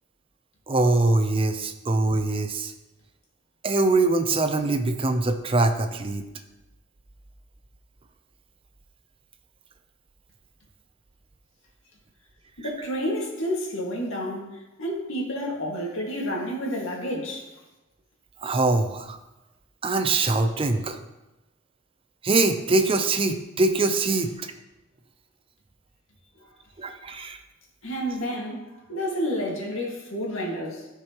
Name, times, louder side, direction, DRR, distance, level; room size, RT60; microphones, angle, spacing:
voice 1, 0.7-2.7 3.6-6.2 18.4-19.2 19.8-21.0 22.2-24.5 26.8-27.4, right 2 dB, 25° right, 7 dB, 0.5 m, -23 dB
voice 2, 12.6-17.4 27.8-30.9, equal, 80° left, -1 dB, 1.9 m, -30 dB
13.5 x 4.8 x 3.0 m, 1.0 s
head